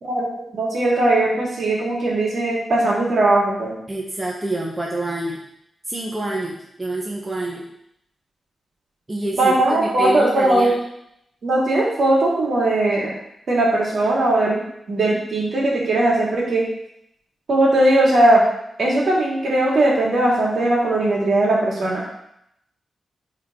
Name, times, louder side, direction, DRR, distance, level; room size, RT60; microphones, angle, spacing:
voice 1, 0.0-3.7 9.4-10.7 11.4-13.1 13.5-16.7 17.5-18.4 18.8-22.0, right 1 dB, 60° right, -3 dB, 2.3 m, -19 dB
voice 2, 3.9-5.4 5.9-7.7 9.1-10.8, right 2 dB, 15° right, -3 dB, 0.9 m, -27 dB
10.0 x 3.9 x 3.7 m, 0.77 s
wide cardioid pair, 140°, 0 cm